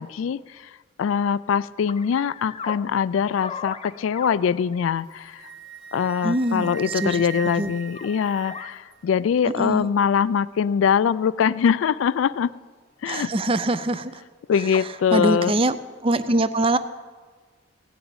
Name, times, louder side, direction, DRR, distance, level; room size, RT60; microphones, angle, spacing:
voice 1, 0.0-5.5 5.9-12.5 13.0-13.3 14.5-15.5, left 7 dB, 75° left, 18 dB, 0.3 m, -23 dB
sound 1, 1.9-2.8 3.4-4.4 4.7-4.8 6.2-6.4 6.7-7.1 7.9-8.1 8.5-8.7 10.2-10.3 11.8-12.0 12.6-12.7 14.2-14.3 14.7-14.8, left 5 dB, 30° left, 0.5 m, -37 dB
Wind instrument woodwind instrument, 5.0-8.9, right 6 dB, 75° right, 1.7 m, -39 dB
voice 2, 6.2-7.3 7.6-7.7 9.4-9.9 13.1-14.2 14.6-15.8 16.0-16.8, right 1 dB, 25° right, 13 dB, 0.5 m, -24 dB
16.0 x 6.9 x 8.9 m, 1.5 s
head